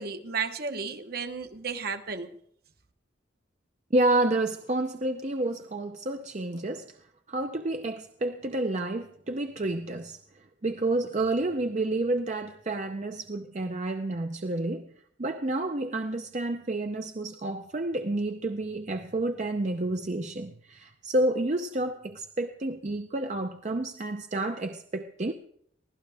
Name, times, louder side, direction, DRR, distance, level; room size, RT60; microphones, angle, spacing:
voice 1, 0.0-2.3, right 5 dB, 55° right, 1.1 m, -33 dB
voice 2, 3.9-7.0 7.3-14.9 15.2-25.3, right 2 dB, 40° right, 0.6 m, -30 dB
23.5 x 15.5 x 3.5 m
head